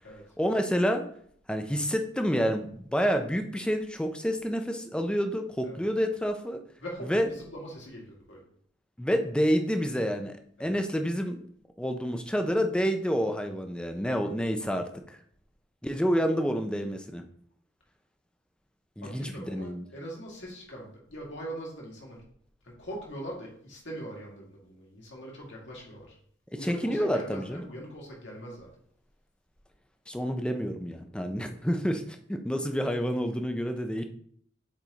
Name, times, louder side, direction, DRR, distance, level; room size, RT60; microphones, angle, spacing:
voice 1, 0.4-1.0 1.5-6.6 7.1-7.3 9.0-11.4 11.8-15.2 15.8-17.2 19.0-19.8 26.6-27.6 30.1-34.0, equal, 5° left, 6 dB, 0.5 m, -28 dB
voice 2, 6.8-8.4 10.6-10.8 19.0-22.2 22.6-26.2 26.5-28.7, right 1 dB, 70° left, -3 dB, 2.1 m, -42 dB
7.3 x 3.6 x 4.0 m, 0.63 s
head